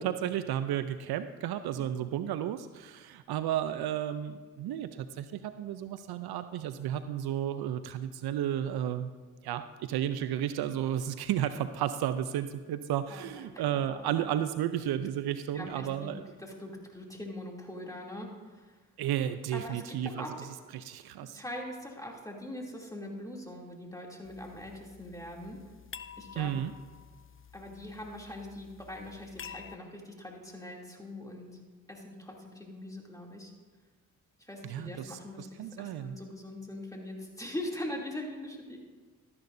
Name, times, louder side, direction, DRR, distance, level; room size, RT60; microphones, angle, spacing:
voice 1, 0.0-9.1 9.4-16.2 19.0-20.3 20.7-21.4 26.4-26.7 34.6-36.2, right 10 dB, 70° right, 12 dB, 0.6 m, -33 dB
voice 2, 13.1-14.3 15.5-18.8 19.5-20.4 21.3-25.6 26.2-26.5 27.5-31.6 31.9-33.5 34.4-38.8, left 1 dB, 10° left, -1 dB, 2.8 m, -42 dB
sound 1, 24.2-29.8, left 7 dB, 35° left, 0.6 m, -50 dB
13.0 x 11.0 x 2.7 m, 1.4 s
supercardioid pair, 45°, 39 cm